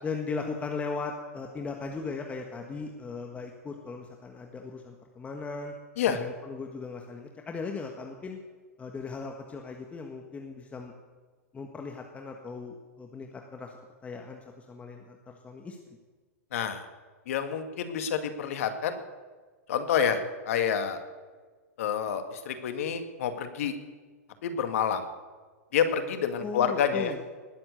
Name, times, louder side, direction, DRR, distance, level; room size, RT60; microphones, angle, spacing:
voice 1, 0.0-5.7 6.1-8.4 8.8-10.9 11.5-13.7 14.0-15.8 26.4-27.2, left 4 dB, 15° left, 2 dB, 1.6 m, -38 dB
voice 2, 16.5-16.8 17.3-19.0 19.7-20.2 20.5-21.0 21.8-23.7 24.4-25.0 25.7-27.1, left 8 dB, 65° left, 8 dB, 2.0 m, -28 dB
19.5 x 7.9 x 8.1 m, 1.4 s
hypercardioid pair, 110°, 8 cm